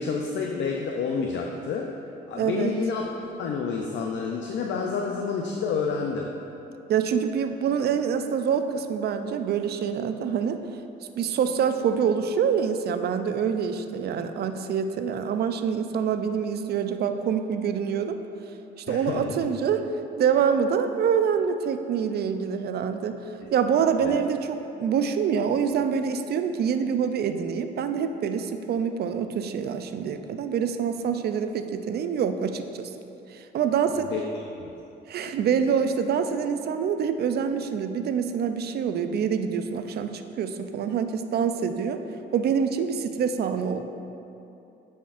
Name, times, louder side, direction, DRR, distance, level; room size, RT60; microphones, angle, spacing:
voice 1, 0.0-1.9 2.3-3.1 3.4-6.3 18.9-19.4 24.0-24.2 34.1-34.2 34.6-34.7, left 5 dB, 65° left, 1 dB, 0.5 m, -29 dB
voice 2, 2.4-2.7 6.9-10.6 11.2-18.2 18.8-19.8 20.2-23.2 23.5-32.9 33.3-34.1 35.1-42.0 42.3-43.8, right 7 dB, 55° right, 8 dB, 0.4 m, -26 dB
9.1 x 4.3 x 2.5 m, 2.8 s
cardioid pair, 90°, 20 cm